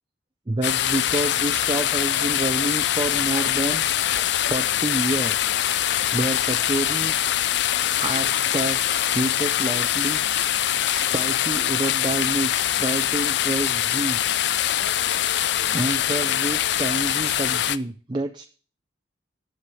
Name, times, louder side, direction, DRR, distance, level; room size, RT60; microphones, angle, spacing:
voice 1, 0.5-5.4 6.1-7.4 8.0-8.9 9.1-10.2 10.6-14.6 15.7-18.5, right 2 dB, 25° right, 6 dB, 0.5 m, -28 dB
sound 1, 0.6-17.8, left 11 dB, 70° left, 0.4 m, -23 dB
7.9 x 7.2 x 6.9 m, 0.41 s
head